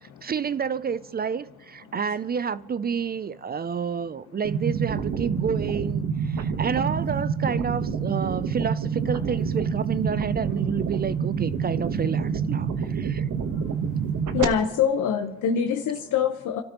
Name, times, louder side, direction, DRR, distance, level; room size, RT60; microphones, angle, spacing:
voice 1, 0.0-13.3, right 6 dB, 30° right, 0.4 m, -29 dB
sound 1, 4.4-14.4, right 6 dB, 75° right, 1.3 m, -27 dB
voice 2, 14.3-16.6, left 7 dB, 80° left, 1.1 m, -24 dB
30.0 x 13.0 x 3.0 m
cardioid pair, 90°, 30 cm